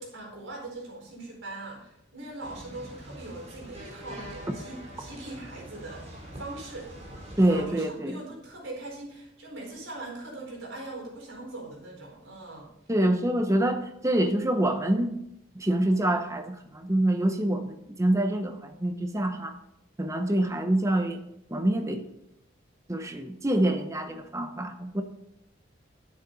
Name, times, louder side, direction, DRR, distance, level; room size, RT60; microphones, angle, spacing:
voice 1, 0.0-6.1 6.3-6.9 7.5-12.7, right 2 dB, 90° right, -1 dB, 4.5 m, -41 dB
sound 1, 2.4-7.6, equal, 35° right, 3.5 m, -44 dB
voice 2, 7.4-8.2 12.9-15.2 15.5-19.5 20.0-21.2 21.5-22.0 22.9-25.0, right 1 dB, 15° right, 5 dB, 1.0 m, -26 dB
11.0 x 9.7 x 4.1 m, 0.79 s
head